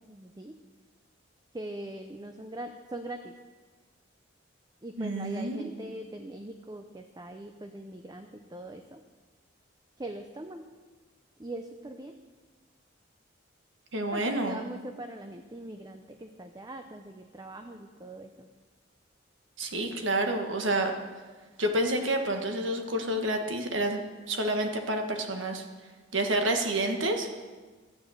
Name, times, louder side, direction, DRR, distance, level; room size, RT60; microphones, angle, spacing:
voice 1, 0.1-0.6 1.5-3.4 4.8-9.0 10.0-10.7 11.4-12.2 14.1-18.5, right 1 dB, 20° right, 6 dB, 0.5 m, -42 dB
voice 2, 5.0-5.7 13.9-14.6 19.6-20.9 21.6-24.0 24.3-25.6 26.1-27.3, right 1 dB, 75° right, 4 dB, 1.5 m, -29 dB
13.0 x 9.2 x 6.4 m, 1.4 s
head